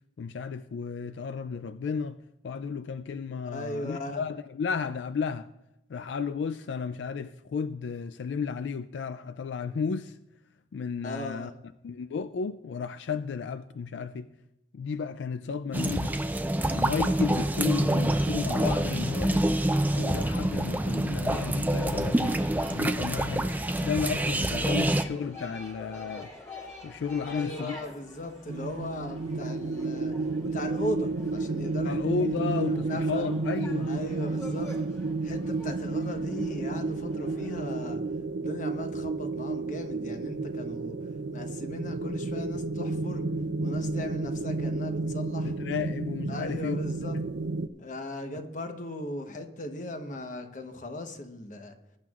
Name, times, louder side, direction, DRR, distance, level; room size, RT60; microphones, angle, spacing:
voice 1, 0.2-2.2 2.4-5.5 5.9-10.2 10.7-11.5 11.8-14.3 14.7-16.2 16.7-19.5 20.0-22.4 22.7-23.5 23.8-26.3 26.8-27.8 31.8-33.9 45.4-46.8, left 5 dB, 85° left, 0.4 m, -33 dB
voice 2, 3.5-4.2 11.0-11.5 27.3-30.1 30.4-32.6 32.9-33.3 33.9-34.7 35.2-38.0 38.3-41.0 41.3-43.2 43.6-45.5 46.3-47.2 47.8-51.7, left 1 dB, 45° left, 1.1 m, -38 dB
sound 1, 15.7-25.0, right 1 dB, 10° right, 0.4 m, -26 dB
sound 2, 21.8-37.9, left 1 dB, 20° left, 2.9 m, -48 dB
sound 3, 28.5-47.7, right 3 dB, 80° right, 0.5 m, -31 dB
20.5 x 10.5 x 2.4 m
head